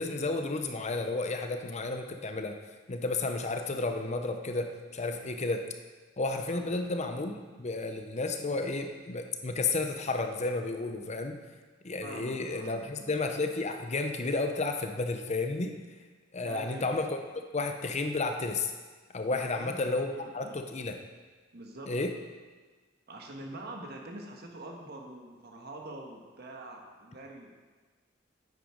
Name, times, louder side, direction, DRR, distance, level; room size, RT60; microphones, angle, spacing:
voice 1, 0.0-2.6 2.9-5.7 6.2-11.4 11.8-15.7 16.3-17.2 17.5-18.7 19.1-21.0 21.9-22.1, left 3 dB, 35° left, 5 dB, 0.7 m, -32 dB
voice 2, 12.0-13.1 16.4-17.1 19.3-20.6 21.5-21.9 23.1-27.5, right 1 dB, 55° right, 1 dB, 1.5 m, -45 dB
9.2 x 9.0 x 5.1 m, 1.4 s
head